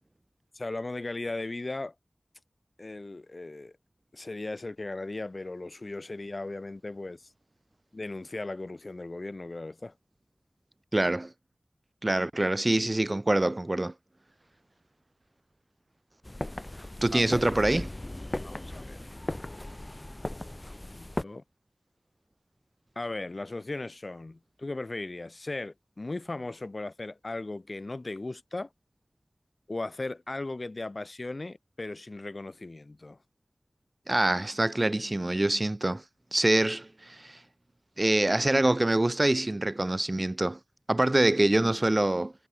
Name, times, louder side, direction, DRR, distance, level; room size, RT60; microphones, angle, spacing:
voice 1, 0.5-1.9 2.8-3.7 4.1-7.3 7.9-9.9 17.1-17.5 18.4-19.0 20.9-21.4 23.0-28.7 29.7-33.2, left 2 dB, 50° left, 2.4 m, -37 dB
voice 2, 10.9-11.3 12.0-13.9 17.0-17.9 34.1-36.0 36.3-37.4 38.0-40.6 40.9-42.3, right 1 dB, 35° right, 0.4 m, -25 dB
sound 1, 16.2-21.2, left 1 dB, 25° left, 3.0 m, -37 dB
cardioid pair, 40°, 0 cm